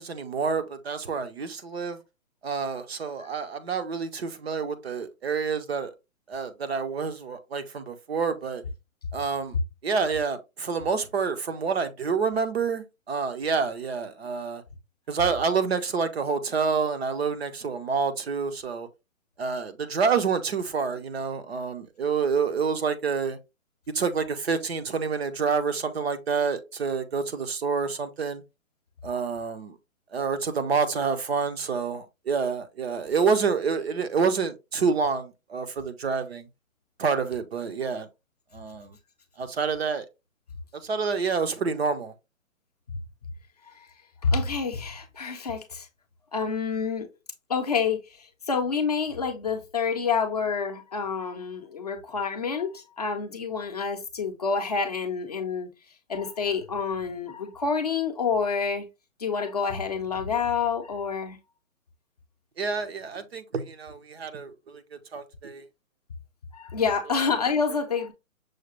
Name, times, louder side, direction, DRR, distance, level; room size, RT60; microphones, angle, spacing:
voice 1, 0.0-2.0 2.4-5.9 6.3-8.6 9.1-9.6 9.8-14.6 15.1-18.9 19.4-23.4 23.9-28.4 29.0-29.8 30.1-36.5 37.0-38.1 38.5-39.0 39.4-40.1 40.7-42.1 62.6-65.6 67.1-67.2, right 5 dB, 50° right, 0.7 m, -28 dB
voice 2, 44.2-45.9 46.3-47.1 47.5-48.0 48.5-55.7 56.1-58.9 59.2-61.4 66.5-68.1, left 5 dB, 30° left, 0.5 m, -28 dB
6.3 x 2.3 x 3.0 m
hypercardioid pair, 170°, 40 cm